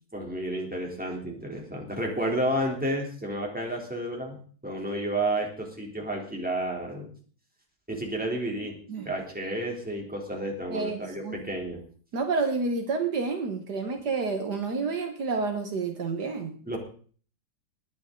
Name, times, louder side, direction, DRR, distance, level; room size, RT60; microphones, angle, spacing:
voice 1, 0.1-7.1 7.9-8.8 9.0-11.8 16.7-16.8, right 1 dB, 5° right, 0 dB, 3.3 m, -31 dB
voice 2, 10.7-11.4 12.1-16.5, right 4 dB, 65° right, 5 dB, 2.0 m, -29 dB
19.5 x 10.0 x 3.9 m, 0.43 s
omnidirectional pair, 1.9 m